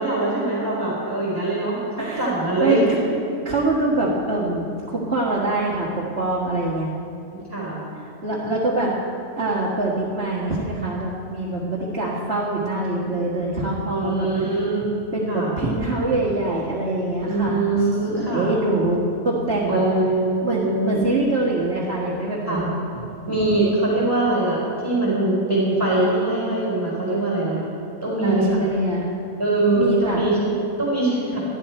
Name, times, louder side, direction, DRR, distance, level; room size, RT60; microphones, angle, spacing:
voice 1, 0.0-3.0 7.3-7.8 8.4-8.5 13.8-14.8 15.3-15.5 17.2-18.5 19.7-21.1 22.5-22.7 23.3-27.7 28.0-28.6 29.4-31.4, right 2 dB, 15° right, -6 dB, 4.3 m, -22 dB
voice 2, 2.0-2.3 2.6-2.8 3.4-6.9 8.0-8.9 9.4-14.3 15.1-19.8 20.4-22.8 28.2-29.1 29.8-30.3, right 2 dB, 45° right, -6 dB, 2.1 m, -24 dB
20.0 x 13.0 x 4.4 m, 2.6 s
omnidirectional pair, 1.5 m